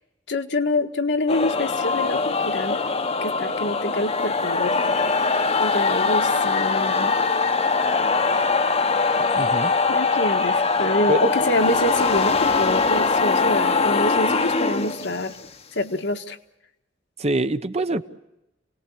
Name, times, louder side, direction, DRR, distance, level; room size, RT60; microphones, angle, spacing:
voice 1, 0.3-2.8 3.2-5.0 5.6-7.1 9.9-15.4 15.7-16.4, left 1 dB, 65° left, 6 dB, 1.6 m, -26 dB
sound 1, 1.3-15.5, left 4 dB, 35° left, 1.1 m, -22 dB
voice 2, 9.3-9.7 11.1-11.3 17.2-18.0, right 1 dB, 35° right, 10 dB, 1.0 m, -24 dB
30.0 x 19.0 x 8.5 m, 0.89 s
head